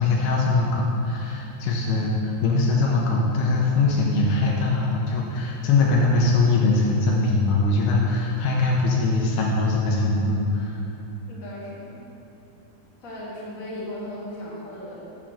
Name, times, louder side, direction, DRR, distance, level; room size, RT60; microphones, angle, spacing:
voice 1, 0.0-10.8, left 3 dB, 75° left, -2 dB, 2.4 m, -22 dB
voice 2, 11.3-12.1 13.0-15.0, left 1 dB, 60° left, -7 dB, 0.8 m, -36 dB
7.3 x 5.8 x 6.3 m, 2.9 s
omnidirectional pair, 5.1 m